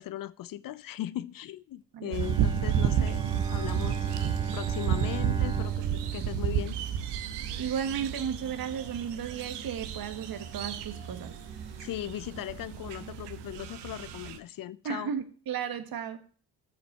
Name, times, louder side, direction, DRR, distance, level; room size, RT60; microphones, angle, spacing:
voice 1, 0.0-4.1 4.5-6.8 11.8-15.1, left 13 dB, 50° left, 0.5 m, -38 dB
voice 2, 1.9-2.3 7.6-11.4 14.8-16.2, right 8 dB, 50° right, 1.4 m, -34 dB
sound 1, 2.1-14.4, right 9 dB, 65° right, 1.0 m, -32 dB
Bowed string instrument, 2.2-7.5, right 7 dB, 10° right, 1.6 m, -35 dB
sound 2, 4.9-12.1, left 3 dB, 90° left, 2.8 m, -56 dB
9.2 x 6.6 x 4.2 m
hypercardioid pair, 45°, 45 cm